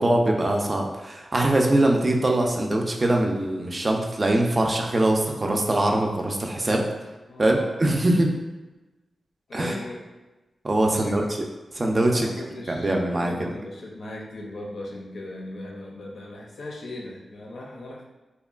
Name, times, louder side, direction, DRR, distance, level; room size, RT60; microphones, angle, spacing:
voice 1, 0.0-6.8 7.4-8.3 9.5-9.8 10.6-11.2 11.7-12.3 12.7-13.5, right 1 dB, 35° right, 1 dB, 0.4 m, -22 dB
voice 2, 7.3-8.0 9.5-10.0 10.9-11.2 12.1-18.0, left 1 dB, 75° left, -2 dB, 0.5 m, -38 dB
2.8 x 2.2 x 2.4 m, 1.1 s
cardioid pair, 65°, 0 cm